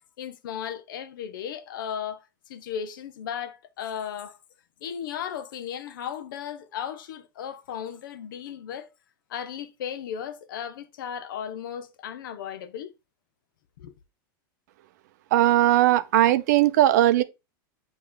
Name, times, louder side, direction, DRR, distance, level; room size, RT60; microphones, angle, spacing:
voice 1, 0.2-4.4 4.8-8.9 9.3-12.9 13.8-14.0, left 8 dB, 70° left, 0.8 m, -35 dB
voice 2, 15.3-17.2, right 14 dB, 55° right, 0.5 m, -19 dB
8.6 x 3.1 x 3.9 m
supercardioid pair, 170°, 11 cm